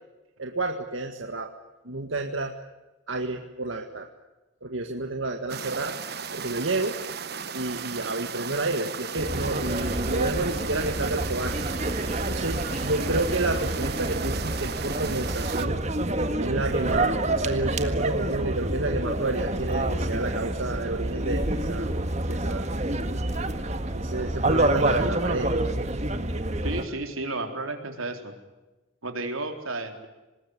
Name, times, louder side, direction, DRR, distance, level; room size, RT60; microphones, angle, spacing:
voice 1, 0.4-1.5 1.9-2.5 3.1-4.1 4.6-6.0 6.3-7.0 7.5-11.6 12.3-16.1 16.4-21.9 22.3-22.7 23.9-25.6, right 2 dB, 70° right, 4 dB, 1.9 m, -30 dB
sound 1, 5.5-15.7, right 6 dB, 50° right, 1.2 m, -36 dB
sound 2, 9.2-26.8, right 1 dB, 35° right, 1.8 m, -28 dB
voice 2, 26.6-28.3 29.0-30.1, right 2 dB, 85° right, 5 dB, 4.0 m, -32 dB
25.5 x 20.5 x 9.8 m, 1.1 s
head